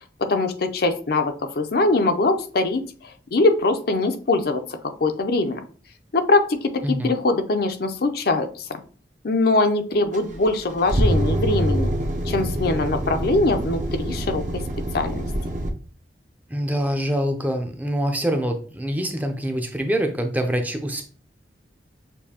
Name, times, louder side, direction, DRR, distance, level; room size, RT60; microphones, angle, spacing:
voice 1, 0.2-5.6 6.1-8.8 9.2-11.9 12.3-14.6 14.9-15.3, left 2 dB, 60° left, 7 dB, 0.5 m, -22 dB
sound 1, 10.1-15.7, right 1 dB, 45° right, 0.7 m, -25 dB
voice 2, 16.5-21.0, equal, 10° right, 4 dB, 0.5 m, -25 dB
6.8 x 2.6 x 2.8 m, 0.41 s
head